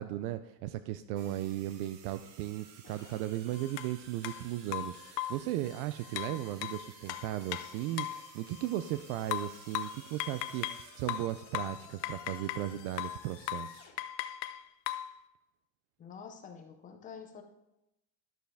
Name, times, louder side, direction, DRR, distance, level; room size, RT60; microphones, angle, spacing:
voice 1, 0.0-13.9, right 14 dB, 75° right, 12 dB, 0.6 m, -36 dB
sound 1, 1.2-11.5, right 7 dB, 40° right, 0.9 m, -56 dB
sound 2, 2.8-13.9, left 8 dB, 50° left, 1.9 m, -56 dB
sound 3, 3.8-3.9 4.2-4.4 4.7-5.5 6.2-8.2 9.3-10.8 11.1-12.7 13.0-13.2 13.5-13.7 14.0-15.1, left 14 dB, 85° left, 0.8 m, -37 dB
voice 2, 16.0-17.4, left 6 dB, 20° left, 4 dB, 0.3 m, -47 dB
12.0 x 6.8 x 3.5 m, 0.91 s
cardioid pair, 165°, 49 cm